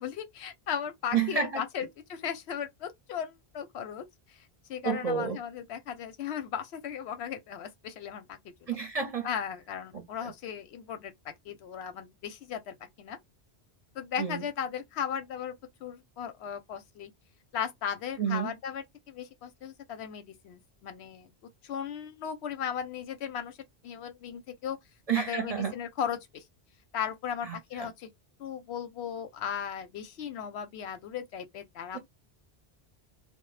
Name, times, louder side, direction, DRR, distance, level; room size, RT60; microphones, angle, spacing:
voice 1, 0.0-8.8 9.2-13.2 13.9-17.1 17.5-21.3 21.6-23.6 23.8-24.8 25.2-26.4 26.9-28.1 28.4-32.0, left 8 dB, 90° left, 0.9 m, -37 dB
voice 2, 1.1-1.6 4.8-5.4 8.7-9.3 9.9-10.3 14.2-14.4 18.2-18.5 25.1-25.7 27.4-27.9, right 7 dB, 45° right, 0.5 m, -30 dB
2.1 x 2.0 x 3.1 m
omnidirectional pair, 1.1 m